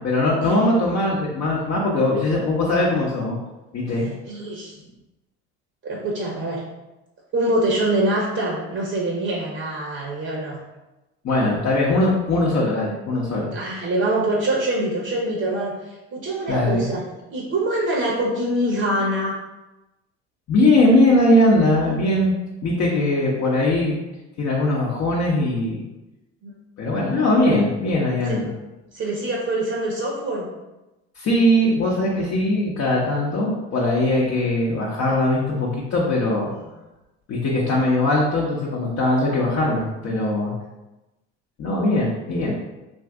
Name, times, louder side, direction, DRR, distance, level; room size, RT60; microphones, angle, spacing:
voice 1, 0.0-3.4 3.7-4.1 11.2-13.5 16.5-16.9 20.5-22.3 22.6-24.0 24.4-25.8 26.8-28.5 31.2-36.5 37.3-40.5 41.6-42.5, left 1 dB, 45° left, -5 dB, 0.8 m, -20 dB
voice 2, 4.3-4.7 5.8-6.6 7.3-10.6 13.5-17.0 17.3-19.4 26.4-26.5 28.3-28.5 28.9-30.5 36.6-36.7, right 1 dB, 40° right, -2 dB, 0.8 m, -24 dB
2.6 x 2.4 x 3.4 m, 1.0 s
supercardioid pair, 75°, 34 cm